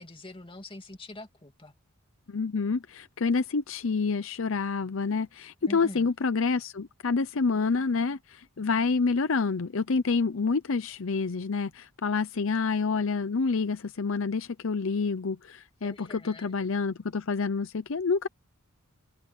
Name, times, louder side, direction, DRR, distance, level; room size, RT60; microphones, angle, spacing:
voice 1, 0.0-1.7 5.7-6.1 15.8-16.5, left 1 dB, 25° left, 2.5 m, -44 dB
voice 2, 2.3-18.3, left 4 dB, 65° left, 0.7 m, -28 dB
head